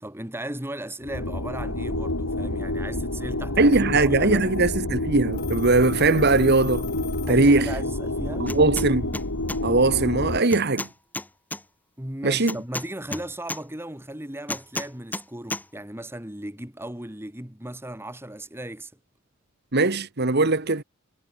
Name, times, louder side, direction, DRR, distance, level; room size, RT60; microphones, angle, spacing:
voice 1, 0.0-4.5 7.3-8.5 12.0-18.9, right 1 dB, 10° right, 1.9 m, -36 dB
sound 1, 1.0-10.4, left 1 dB, 90° left, 3.1 m, -29 dB
voice 2, 3.6-6.9 7.3-7.7 8.4-9.1 9.6-10.9 12.2-12.5 19.7-20.8, right 3 dB, 50° right, 1.4 m, -20 dB
Telephone, 5.3-8.1, left 11 dB, 45° left, 3.5 m, -44 dB
sound 2, 8.5-8.9 9.1-9.6 10.5-11.6 12.5-13.6 14.5-15.2 15.5-15.6, left 2 dB, 10° left, 2.7 m, -32 dB
head